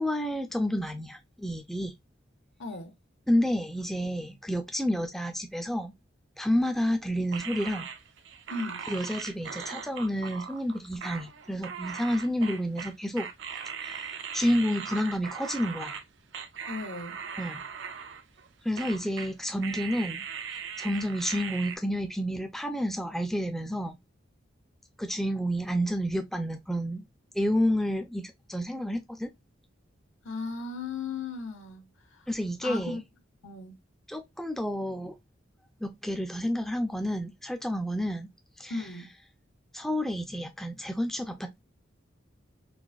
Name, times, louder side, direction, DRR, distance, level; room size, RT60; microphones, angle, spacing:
voice 1, 0.0-1.9 3.3-5.9 6.4-7.9 8.9-13.3 13.8-16.0 17.4-17.6 18.6-20.3 20.8-24.0 25.0-27.0 27.4-29.3 32.3-33.0 34.1-35.1 35.8-38.3 38.6-38.7 39.7-41.6, equal, ahead, 0.4 m, -30 dB
voice 2, 2.6-2.9 8.5-8.9 16.7-17.2 30.2-31.8 32.6-33.0 33.4-33.8 38.7-39.1, left 3 dB, 80° left, 1.0 m, -36 dB
sound 1, 7.3-16.0 16.3-18.5 18.8-19.3 19.6-21.8, right 7 dB, 60° right, 0.5 m, -39 dB
3.9 x 2.5 x 2.3 m
head